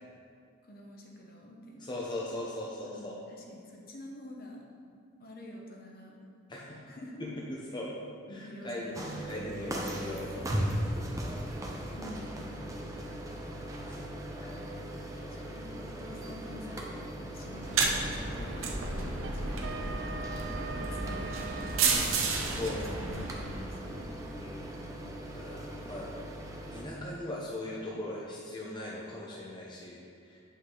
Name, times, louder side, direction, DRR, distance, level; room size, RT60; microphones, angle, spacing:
voice 1, 0.6-1.9 2.8-4.6 5.2-6.2 6.9-7.2 8.3-10.8 12.0-12.6 15.3-18.6 18.9-21.5 22.5-24.1, left 1 dB, 45° left, -1 dB, 1.0 m, -48 dB
voice 2, 1.8-3.2 6.5-6.8 7.2-7.9 8.3-11.0 14.0-14.1 14.3-14.8 15.1-15.4 18.3-18.7 21.8-22.2 22.4-22.8 24.4-24.7 25.3-26.1 26.7-30.4, left 1 dB, 20° left, -4 dB, 0.7 m, -40 dB
sound 1, 8.9-26.8, right 1 dB, 15° right, 0.6 m, -39 dB
sound 2, 17.5-23.9, right 4 dB, 80° right, 0.9 m, -32 dB
Wind instrument woodwind instrument, 19.2-22.2, right 6 dB, 60° right, 0.3 m, -42 dB
8.1 x 5.5 x 3.8 m, 2.4 s
head